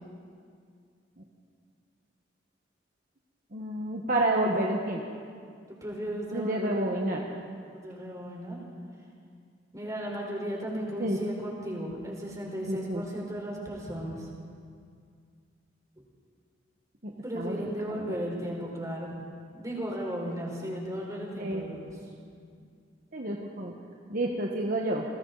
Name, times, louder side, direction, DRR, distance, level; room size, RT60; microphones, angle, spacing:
voice 1, 3.5-5.0 6.3-7.2 11.0-11.2 12.7-13.0 17.0-18.2 21.4-21.6 23.1-23.7 24.1-25.0, right 1 dB, 45° right, -1 dB, 1.4 m, -30 dB
voice 2, 5.7-7.0 7.7-8.6 9.7-14.3 17.2-19.2 19.5-21.9, equal, 20° right, -1 dB, 4.5 m, -35 dB
29.5 x 22.0 x 4.1 m, 2.2 s
head